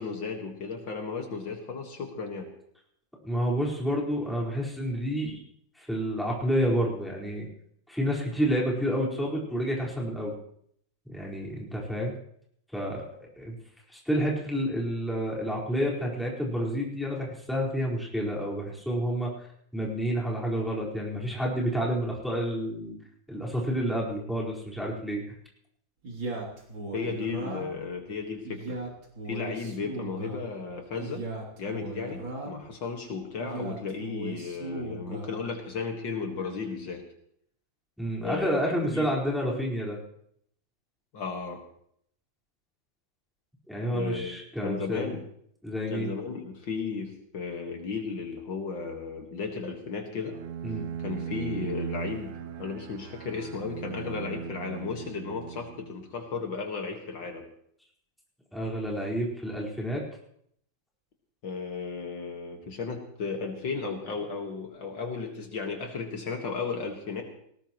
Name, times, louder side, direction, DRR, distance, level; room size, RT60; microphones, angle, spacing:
voice 1, 0.0-2.5 26.9-28.8 29.3-31.3 31.6-37.0 38.2-39.1 41.1-41.6 43.9-45.2 45.9-50.4 51.0-57.4 61.4-67.2, left 5 dB, 70° left, 3 dB, 2.5 m, -34 dB
voice 2, 3.2-5.4 5.7-7.5 7.9-10.3 11.0-12.1 12.7-13.5 13.9-19.5 19.7-23.0 23.3-25.2 38.0-40.0 43.7-45.2 45.6-46.1 50.6-50.9 58.5-60.0, equal, ahead, -4 dB, 4.4 m, -29 dB
Male speech man speaking, 26.0-27.9 28.4-30.4 31.0-32.7 33.4-35.4, right 2 dB, 75° right, 3.8 m, -37 dB
Bowed string instrument, 50.3-56.1, right 8 dB, 60° right, 1.0 m, -38 dB
19.5 x 18.5 x 3.1 m, 0.68 s
omnidirectional pair, 2.1 m